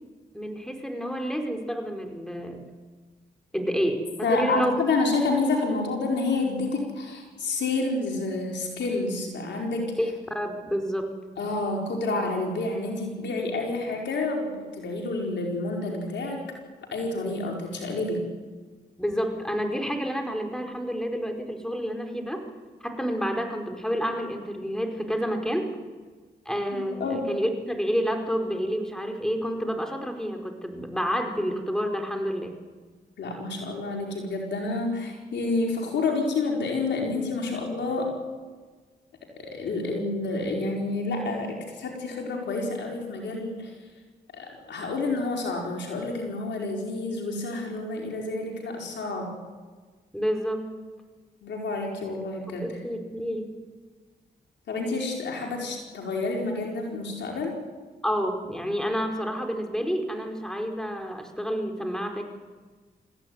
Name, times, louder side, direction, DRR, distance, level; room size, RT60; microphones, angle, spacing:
voice 1, 0.3-2.6 3.5-4.7 10.0-11.1 19.0-22.4 22.8-25.7 26.4-32.5 50.1-50.7 52.6-53.5 58.0-62.2, equal, 5° left, 4 dB, 4.8 m, -29 dB
voice 2, 4.2-9.9 11.4-16.4 16.9-18.2 26.7-27.3 33.2-38.1 39.4-43.7 44.3-49.3 51.4-52.6 54.7-57.6, left 3 dB, 80° left, 1 dB, 4.8 m, -29 dB
26.0 x 15.0 x 9.6 m, 1.4 s
supercardioid pair, 45°, 18 cm